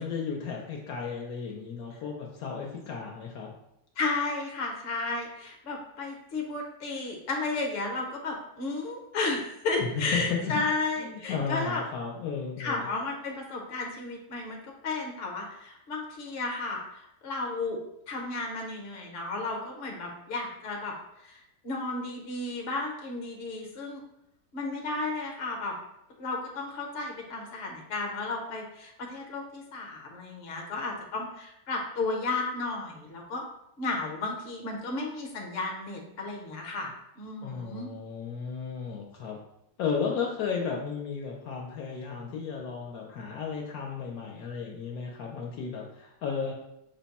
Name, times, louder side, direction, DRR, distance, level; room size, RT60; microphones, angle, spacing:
voice 1, 0.0-3.5 9.8-10.5 11.0-12.9 37.4-39.4 39.8-46.5, left 6 dB, 70° left, 0 dB, 1.1 m, -34 dB
voice 2, 4.0-11.8 12.6-17.8 18.1-20.9 21.2-24.0 24.5-25.7 26.2-33.4 33.8-37.9, left 3 dB, 45° left, 0 dB, 0.9 m, -33 dB
5.7 x 2.2 x 4.1 m, 0.83 s
omnidirectional pair, 1.8 m